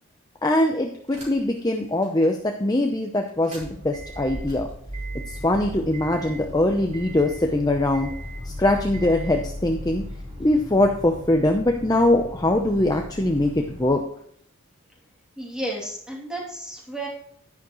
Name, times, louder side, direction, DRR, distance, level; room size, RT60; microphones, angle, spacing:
voice 1, 0.4-4.7 5.3-8.1 8.4-10.0 10.4-14.0, left 1 dB, 15° left, 3 dB, 0.7 m, -22 dB
sound 1, 1.1-1.6 2.0-2.1 3.3-13.9, equal, 30° right, 3.9 m, -37 dB
voice 2, 15.4-17.1, right 1 dB, 5° right, -3 dB, 2.9 m, -32 dB
11.0 x 11.0 x 3.1 m, 0.68 s
head